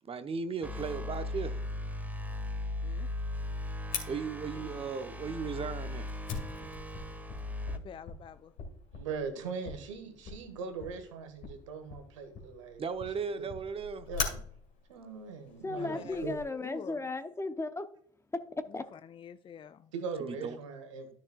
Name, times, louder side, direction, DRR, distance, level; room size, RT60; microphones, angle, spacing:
voice 1, 0.1-1.6 4.1-6.1 12.8-14.1 20.2-20.6, right 5 dB, 35° right, 0.9 m, -36 dB
sound 1, 0.6-7.8, left 1 dB, 10° right, 1.4 m, -38 dB
Fire, 3.9-16.4, left 5 dB, 60° left, 2.3 m, -43 dB
voice 2, 7.5-8.5 15.8-16.2 16.6-17.0 18.7-19.9, left 8 dB, 30° left, 0.5 m, -47 dB
voice 3, 8.9-12.8 13.4-13.5 14.1-14.4 14.9-16.3 19.9-21.1, right 5 dB, 80° right, 1.5 m, -40 dB
voice 4, 15.6-17.9 18.3-18.8, left 2 dB, 15° left, 0.8 m, -35 dB
13.0 x 6.2 x 2.4 m
hypercardioid pair, 55°, 16 cm